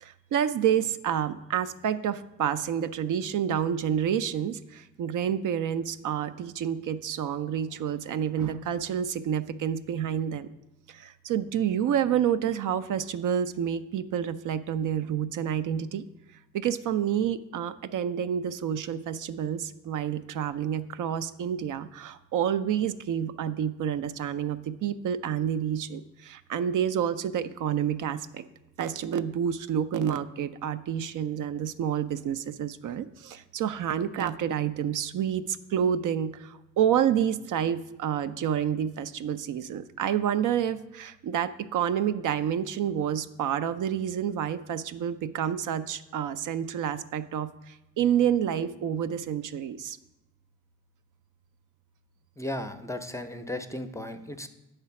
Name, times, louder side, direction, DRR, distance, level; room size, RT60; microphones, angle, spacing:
voice 1, 0.0-10.5 10.9-16.0 16.5-28.4 28.8-50.0, right 9 dB, 70° right, 12 dB, 0.5 m, -29 dB
voice 2, 52.4-54.5, left 1 dB, 10° left, 8 dB, 0.5 m, -35 dB
8.2 x 3.3 x 5.7 m, 0.96 s
cardioid pair, 75°, 33 cm